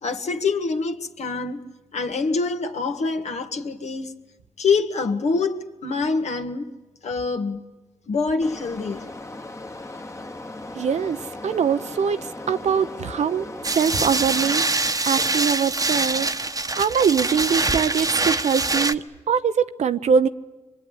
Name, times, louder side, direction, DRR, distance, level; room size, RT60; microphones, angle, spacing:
voice 1, 0.0-1.6 1.9-4.1 4.6-6.7 7.0-7.6 8.1-9.1, left 4 dB, 65° left, 1.8 m, -25 dB
sound 1, 8.4-14.6, left 2 dB, 25° left, 1.5 m, -37 dB
voice 2, 10.7-14.7 15.0-16.3 16.8-20.3, right 7 dB, 70° right, 1.0 m, -23 dB
sound 2, 13.6-18.9, right 3 dB, 30° right, 1.2 m, -24 dB
24.5 x 23.0 x 10.0 m
supercardioid pair, 50°, 12 cm